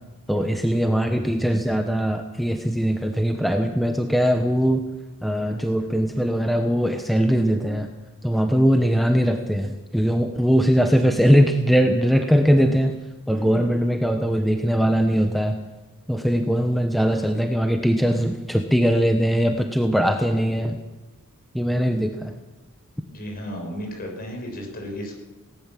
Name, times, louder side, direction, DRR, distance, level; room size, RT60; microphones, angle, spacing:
voice 1, 0.3-4.8 5.2-7.9 8.2-13.0 13.3-15.5 16.1-20.8 21.5-22.3, equal, ahead, 5 dB, 1.1 m, -21 dB
voice 2, 13.4-13.8 23.0-25.2, equal, 45° left, 2 dB, 6.4 m, -34 dB
19.0 x 18.0 x 7.6 m, 1.2 s
head